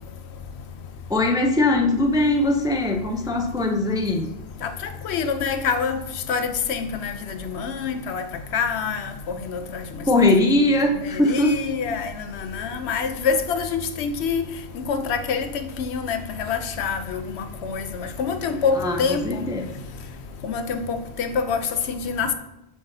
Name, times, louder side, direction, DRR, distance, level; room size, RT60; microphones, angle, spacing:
voice 1, 1.1-4.3 10.1-11.6 18.8-19.0 19.2-19.7, left 2 dB, 5° right, 3 dB, 0.4 m, -20 dB
voice 2, 5.0-6.0 6.3-8.2 8.5-9.8 11.0-14.4 14.7-19.4 20.4-21.6 21.9-22.3, left 5 dB, 80° left, 9 dB, 0.9 m, -26 dB
7.5 x 5.9 x 2.7 m, 0.90 s
omnidirectional pair, 1.1 m